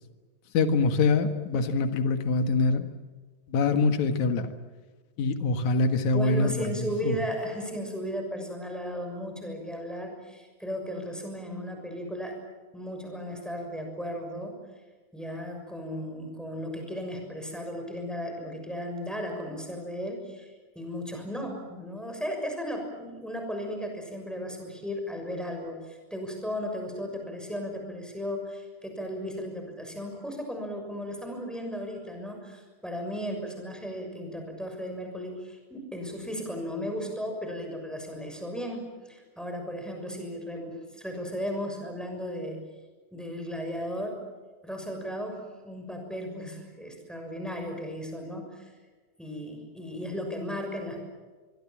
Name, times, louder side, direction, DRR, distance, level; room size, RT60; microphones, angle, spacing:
voice 1, 0.5-2.9 3.5-4.5 5.2-7.2, left 3 dB, 60° left, 8 dB, 2.8 m, -24 dB
voice 2, 6.1-12.4 12.7-14.6 15.1-42.6 43.1-44.2 44.6-48.7 49.2-51.0, equal, ahead, 3 dB, 6.2 m, -35 dB
25.5 x 23.0 x 7.4 m, 1.4 s
omnidirectional pair, 4.1 m